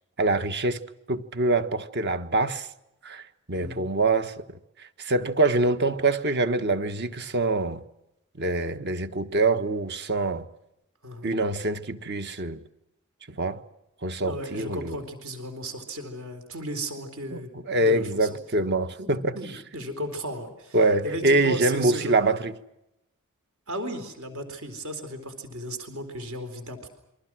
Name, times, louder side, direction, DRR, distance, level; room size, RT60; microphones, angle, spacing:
voice 1, 0.2-0.8 1.1-2.7 3.0-3.2 3.5-4.4 5.0-7.8 8.4-10.4 11.2-12.6 13.4-13.6 14.0-15.0 17.3-17.4 17.7-19.4 20.7-22.5, right 2 dB, 50° right, 1.4 m, -24 dB
voice 2, 3.5-3.9 11.0-11.3 14.2-18.3 19.0-20.8 21.0-22.4 23.7-26.9, right 1 dB, 65° right, 4.2 m, -35 dB
28.0 x 24.0 x 6.3 m
head